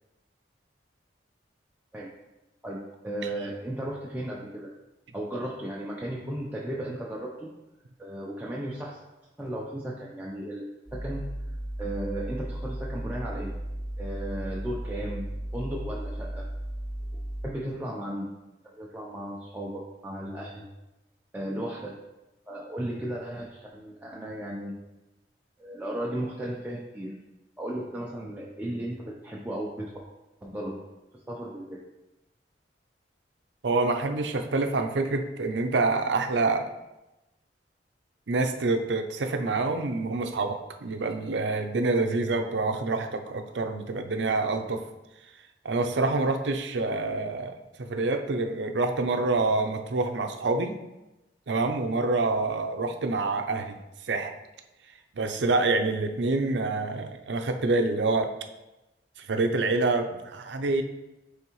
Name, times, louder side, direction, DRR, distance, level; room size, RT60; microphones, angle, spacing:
voice 1, 2.6-4.7 5.1-7.5 8.0-9.0 9.4-10.7 10.9-11.3 11.8-13.5 14.0-16.5 17.1-18.3 18.6-20.7 21.3-21.9 22.5-24.7 25.6-27.1 27.6-29.9 30.4-30.7 31.3-31.8, right 1 dB, 10° right, -5 dB, 0.6 m, -35 dB
sound 1, 10.9-17.5, right 1 dB, 5° left, 1.5 m, -35 dB
voice 2, 33.6-36.6 38.3-44.8 45.6-50.8 51.5-53.8 54.0-54.3 55.1-58.3 59.2-60.8, right 3 dB, 80° right, 6 dB, 0.6 m, -27 dB
9.1 x 3.5 x 3.0 m, 0.99 s
head